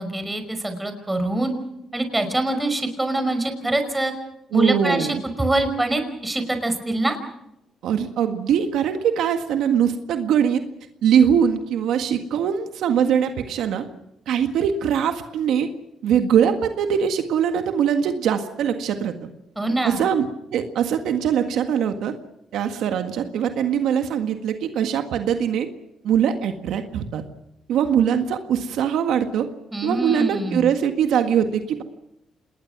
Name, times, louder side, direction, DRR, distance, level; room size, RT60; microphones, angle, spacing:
voice 1, 0.0-1.5 1.9-4.1 4.5-7.2 19.6-20.0 29.7-30.7, right 2 dB, 10° right, 7 dB, 5.2 m, -24 dB
voice 2, 4.5-5.2 7.8-10.6 11.0-13.9 14.3-15.7 16.0-19.3 19.8-22.1 22.5-25.7 26.0-27.2 27.7-29.5 29.8-31.8, right 8 dB, 80° right, 7 dB, 1.7 m, -22 dB
27.5 x 20.5 x 6.1 m, 0.85 s
cardioid pair, 90°, 0 cm